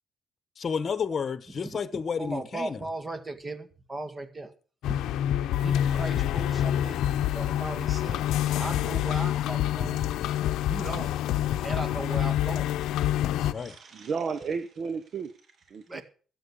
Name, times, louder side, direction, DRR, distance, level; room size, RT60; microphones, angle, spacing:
voice 1, 0.6-2.9 13.3-13.7, left 6 dB, 40° left, 1.1 m, -31 dB
voice 2, 2.2-4.5 5.6-8.3 8.6-10.0 10.7-11.1 11.6-12.8 15.9-16.0, right 2 dB, 25° right, 1.8 m, -37 dB
sound 1, 4.8-13.5, left 11 dB, 85° left, 0.7 m, -27 dB
voice 3, 13.5-16.0, right 5 dB, 55° right, 1.0 m, -34 dB
13.0 x 8.0 x 7.0 m
cardioid pair, 90°, 0 cm